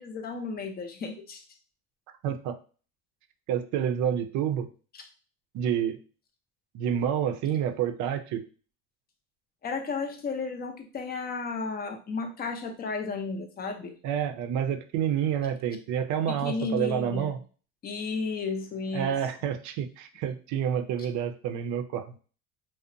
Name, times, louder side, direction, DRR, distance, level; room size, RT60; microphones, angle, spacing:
voice 1, 0.0-1.4 9.6-14.0 16.3-17.3 17.8-19.1, left 4 dB, 30° left, 4 dB, 0.5 m, -33 dB
voice 2, 2.2-2.5 3.5-4.7 5.5-6.0 6.7-8.5 14.0-17.4 18.9-22.1, right 9 dB, 60° right, 8 dB, 0.5 m, -28 dB
2.6 x 2.0 x 2.5 m, 0.38 s
supercardioid pair, 110°, 35 cm